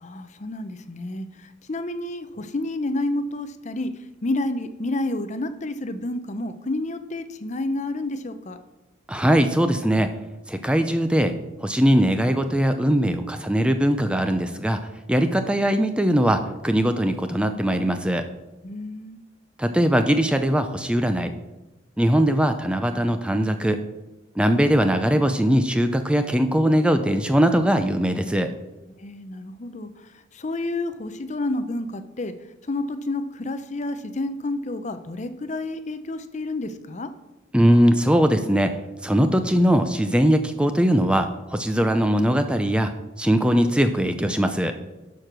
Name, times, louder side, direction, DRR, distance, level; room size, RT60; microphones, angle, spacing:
voice 1, 0.0-3.9 4.2-8.6 18.6-19.2 29.0-29.9 30.3-32.3 32.7-37.1, left 2 dB, 40° left, 10 dB, 0.6 m, -29 dB
voice 2, 9.1-10.1 10.5-11.3 11.6-14.8 15.1-18.3 19.6-21.3 22.0-23.8 24.4-28.5 37.5-38.8 39.0-42.9 43.2-44.8, equal, 5° right, 8 dB, 0.5 m, -20 dB
11.5 x 4.7 x 6.0 m, 1.0 s
head